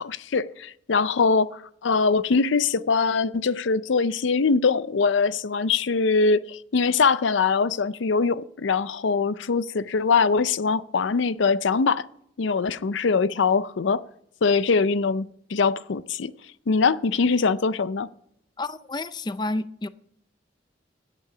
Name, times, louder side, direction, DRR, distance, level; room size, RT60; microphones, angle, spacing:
voice 1, 0.0-12.0 12.4-14.0 14.4-16.3 16.7-18.1, left 4 dB, 75° left, 0.5 m, -22 dB
voice 2, 18.6-19.9, left 2 dB, 20° left, 0.4 m, -30 dB
16.5 x 8.3 x 5.0 m
head